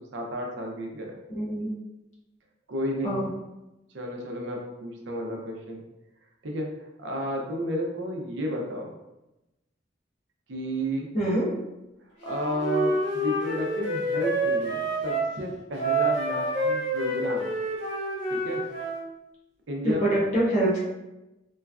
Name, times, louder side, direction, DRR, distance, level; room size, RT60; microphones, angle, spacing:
voice 1, 0.0-1.1 2.7-3.2 3.9-5.8 6.4-6.7 7.0-8.9 10.5-11.1 12.2-17.5 18.3-18.7 19.7-20.2, equal, 80° right, 0 dB, 0.5 m, -32 dB
voice 2, 1.3-1.7 3.0-3.3 11.1-11.5 19.8-20.8, right 1 dB, 40° left, -7 dB, 1.0 m, -25 dB
Wind instrument woodwind instrument, 12.2-15.3 15.7-19.0, right 1 dB, 75° left, 1.2 m, -28 dB
3.0 x 2.3 x 2.3 m, 0.96 s
head